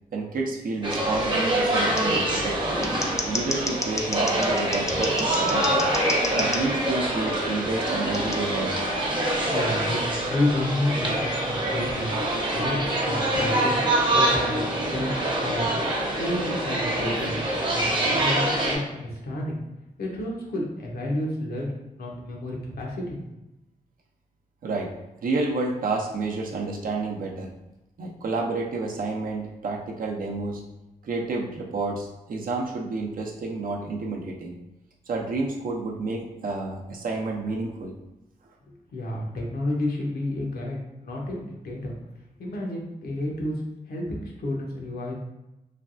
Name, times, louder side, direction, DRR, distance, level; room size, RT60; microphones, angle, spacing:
voice 1, 0.1-2.7 3.3-5.8 6.3-8.8 12.5-12.6 24.6-24.9 25.2-27.5 28.0-30.6 31.0-34.5 35.1-37.9, right 3 dB, 65° right, 0 dB, 0.6 m, -30 dB
sound 1, 0.8-18.8, right 1 dB, 30° right, 0.8 m, -25 dB
Scissors, 0.9-1.0 1.9-2.0 2.7-6.6 8.1-8.4, left 2 dB, 20° left, 0.4 m, -31 dB
voice 2, 9.5-12.1 12.5-13.7 14.1-15.1 15.4-15.7 16.1-17.3 17.7-19.6 20.0-23.2 38.9-42.0 42.4-43.5 43.9-45.1, left 1 dB, 80° left, -1 dB, 0.8 m, -30 dB
3.2 x 2.3 x 2.5 m, 0.97 s
cardioid pair, 75°, 16 cm